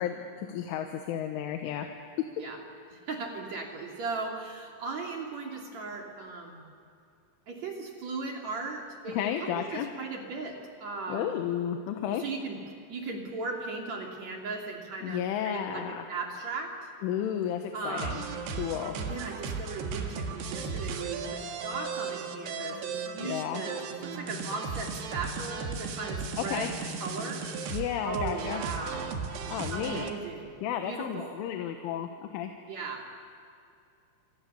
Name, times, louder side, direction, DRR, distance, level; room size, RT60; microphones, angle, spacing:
voice 1, 0.0-1.9 9.1-9.9 11.1-12.2 15.0-16.1 17.0-18.2 18.5-19.0 23.2-23.6 26.4-26.7 27.7-28.6 29.5-30.0 30.6-32.5, left 10 dB, 90° left, 5 dB, 3.7 m, -32 dB
voice 2, 2.9-6.6 7.5-11.4 12.0-12.6 12.9-16.7 17.7-18.2 18.9-26.7 27.0-27.4 28.0-29.1 29.7-30.5 30.8-31.4 32.7-33.1, right 4 dB, 40° right, 0 dB, 3.4 m, -37 dB
sound 1, 18.0-30.1, right 5 dB, 65° right, 3.6 m, -36 dB
28.0 x 26.0 x 6.9 m, 2.4 s
omnidirectional pair, 5.5 m